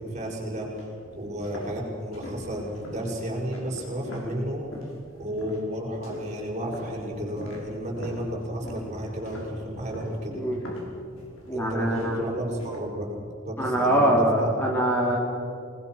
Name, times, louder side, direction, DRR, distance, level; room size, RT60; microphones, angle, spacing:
voice 1, 0.0-4.7 5.2-10.3 11.5-14.5, equal, 35° right, -2 dB, 6.1 m, -32 dB
sound 1, 0.6-5.0 5.4-5.7 6.0-12.8, equal, 70° left, 6.1 m, -42 dB
voice 2, 11.5-12.2 13.6-15.2, right 1 dB, 10° left, -2 dB, 2.8 m, -23 dB
28.5 x 20.0 x 6.2 m, 2.5 s
head